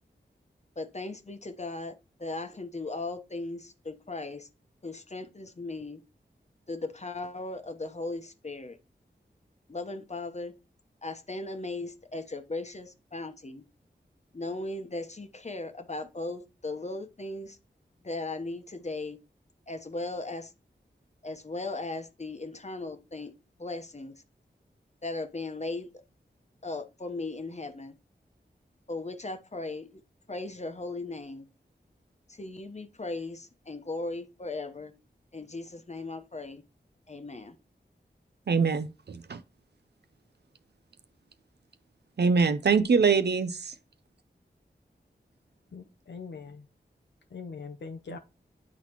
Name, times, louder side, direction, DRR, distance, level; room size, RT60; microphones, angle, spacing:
voice 1, 0.8-1.9 2.2-4.5 4.8-6.0 6.7-8.8 9.7-10.5 11.0-13.6 14.3-17.6 18.0-19.2 19.7-20.5 21.2-23.3 23.6-24.1 25.0-25.9 26.6-27.9 28.9-30.0 30.3-31.5 32.3-34.9 35.3-36.6 37.1-37.6, left 2 dB, 40° left, 1.0 m, -37 dB
voice 2, 38.5-39.4 42.2-43.7, right 5 dB, 65° right, 0.6 m, -24 dB
voice 3, 45.7-46.4 47.3-48.2, left 5 dB, 75° left, 0.6 m, -41 dB
9.7 x 4.1 x 3.0 m
wide cardioid pair, 55°, 18 cm